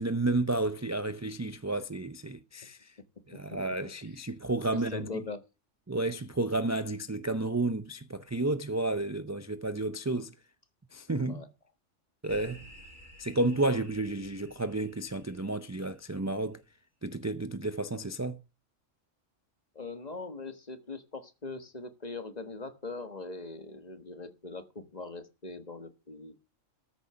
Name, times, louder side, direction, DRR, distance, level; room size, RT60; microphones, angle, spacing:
voice 1, 0.0-2.9 3.3-5.0 5.9-10.3 10.9-11.4 12.2-12.6 13.2-16.6 17.0-18.4, right 2 dB, 20° right, 0.5 m, -31 dB
voice 2, 4.7-5.4 11.3-11.5 19.7-26.3, left 3 dB, 35° left, 1.4 m, -41 dB
sound 1, 12.3-16.2, right 1 dB, 70° left, 8.5 m, -54 dB
13.5 x 6.7 x 6.9 m
omnidirectional pair, 1.3 m